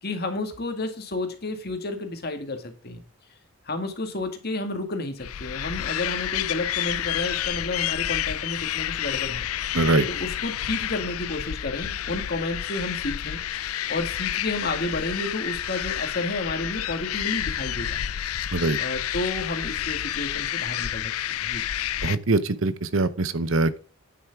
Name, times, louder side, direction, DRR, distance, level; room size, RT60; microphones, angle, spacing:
voice 1, 0.0-3.0 3.7-9.5 10.1-18.0 18.8-21.6, left 2 dB, 45° left, 2.0 m, -31 dB
sound 1, 5.2-22.2, left 11 dB, 75° left, 0.5 m, -29 dB
voice 2, 9.7-10.1 18.5-18.8 22.0-23.8, right 2 dB, 60° right, 0.9 m, -23 dB
9.6 x 7.9 x 3.6 m
head